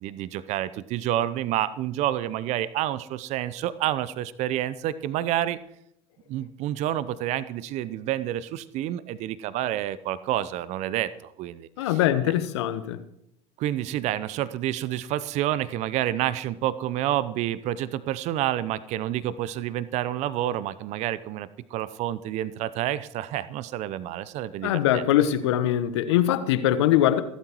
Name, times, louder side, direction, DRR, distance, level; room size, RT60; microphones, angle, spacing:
voice 1, 0.0-5.6 6.3-12.0 12.2-12.3 13.6-25.0, right 12 dB, 50° right, 0.7 m, -29 dB
voice 2, 11.8-13.0 24.6-27.2, left 12 dB, 70° left, 1.2 m, -22 dB
27.0 x 12.5 x 3.1 m
figure-of-eight pair, 70°, 15 cm